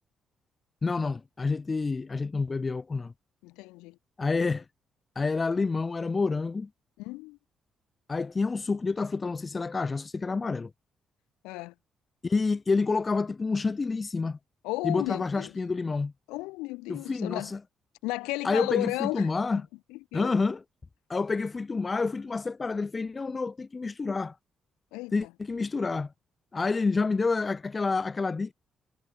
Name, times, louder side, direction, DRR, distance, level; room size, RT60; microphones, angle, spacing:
voice 1, 0.8-3.1 4.2-4.6 5.2-6.7 8.1-10.7 12.2-14.4 14.8-16.1 16.9-17.6 18.4-19.6 20.1-20.6 21.1-24.4 25.1-26.1 26.5-28.5, left 4 dB, 35° left, 0.5 m, -28 dB
voice 2, 3.4-4.0 7.0-7.4 11.4-11.7 14.6-15.5 16.3-17.5 18.0-19.3 19.9-20.3 24.9-25.3, left 22 dB, 80° left, 0.5 m, -34 dB
hypercardioid pair, 45°, 0 cm